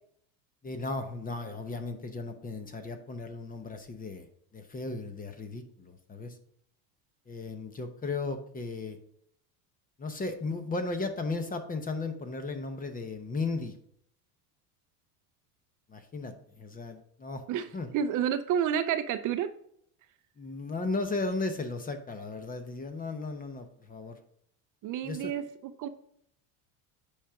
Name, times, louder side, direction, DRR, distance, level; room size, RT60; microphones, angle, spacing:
voice 1, 0.6-4.3 4.5-6.4 7.3-9.0 10.0-13.7 15.9-17.4 17.7-17.9 20.4-24.2 25.0-25.3, left 3 dB, 20° left, 8 dB, 0.8 m, -35 dB
voice 2, 17.9-19.5 24.8-25.4 25.8-25.9, right 9 dB, 40° right, 10 dB, 0.6 m, -29 dB
8.6 x 5.0 x 3.5 m, 0.68 s
supercardioid pair, 120°, 47 cm